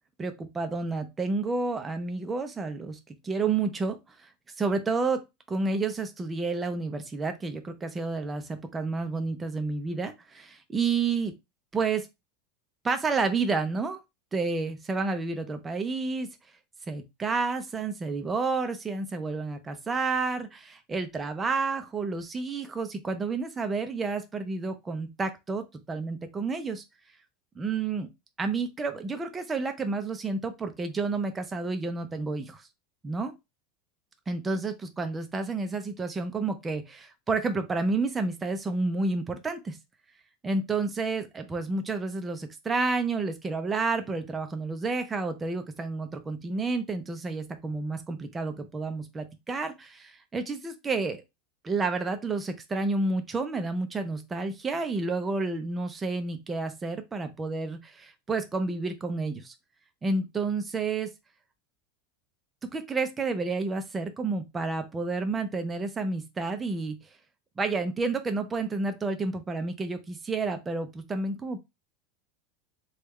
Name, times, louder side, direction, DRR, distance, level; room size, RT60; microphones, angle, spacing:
voice 1, 0.2-3.0 3.2-4.3 4.6-11.3 11.7-12.1 12.8-14.0 14.3-16.3 16.9-26.8 27.6-28.1 28.4-32.7 33.0-33.3 34.3-39.8 40.4-51.2 51.6-59.5 60.0-61.1 62.7-67.0 67.6-71.6, right 3 dB, 15° right, 0.5 m, -30 dB
3.5 x 2.3 x 3.1 m
supercardioid pair, 155°, 0 cm